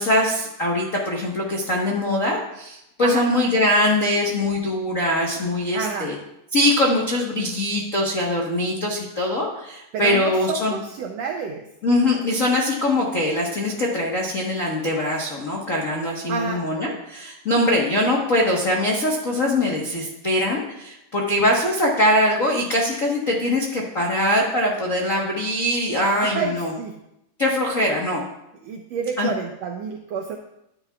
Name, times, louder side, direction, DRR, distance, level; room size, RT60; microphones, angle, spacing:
voice 1, 0.0-6.1 6.5-10.8 11.8-26.7 27.4-28.2 29.2-29.3, left 1 dB, 85° left, -3 dB, 0.7 m, -22 dB
voice 2, 5.7-6.1 9.9-11.7 16.3-16.7 26.2-27.0 28.6-30.4, right 5 dB, 85° right, 3 dB, 1.4 m, -29 dB
13.5 x 9.8 x 2.4 m, 0.85 s
omnidirectional pair, 3.8 m